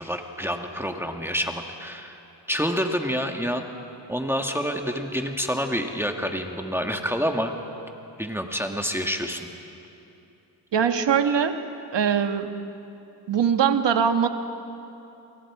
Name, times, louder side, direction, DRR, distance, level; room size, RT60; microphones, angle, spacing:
voice 1, 0.0-2.2 2.5-3.6 4.1-7.5 8.2-9.5, equal, 5° right, 3 dB, 1.7 m, -28 dB
voice 2, 10.7-11.6 11.9-12.5 13.3-14.3, right 7 dB, 70° right, 7 dB, 1.5 m, -22 dB
29.5 x 24.0 x 4.9 m, 2.8 s
cardioid pair, 85°, 44 cm